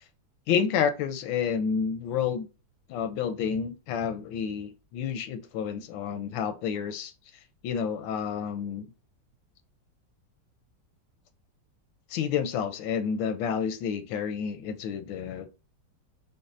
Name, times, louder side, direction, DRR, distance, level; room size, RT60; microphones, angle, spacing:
voice 1, 0.5-2.5 2.9-7.1 7.6-8.9 12.1-15.5, left 7 dB, 85° left, 1.3 m, -29 dB
5.2 x 2.1 x 2.5 m
omnidirectional pair, 2.0 m